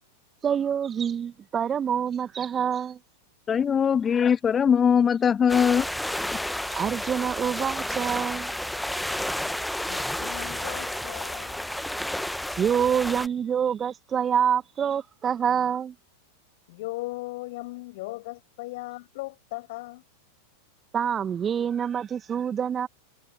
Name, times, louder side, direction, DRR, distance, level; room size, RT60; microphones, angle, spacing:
voice 1, 0.4-3.0 6.7-8.5 12.6-15.9 20.9-22.9, right 8 dB, 25° right, 1.7 m, -26 dB
voice 2, 3.5-5.9 6.3-6.5, left 7 dB, 20° left, 0.6 m, -21 dB
sound 1, 5.5-13.3, left 1 dB, ahead, 1.0 m, -31 dB
voice 3, 9.9-11.7 16.7-20.0, left 21 dB, 50° left, 7.2 m, -38 dB
figure-of-eight pair, 90°, 0 cm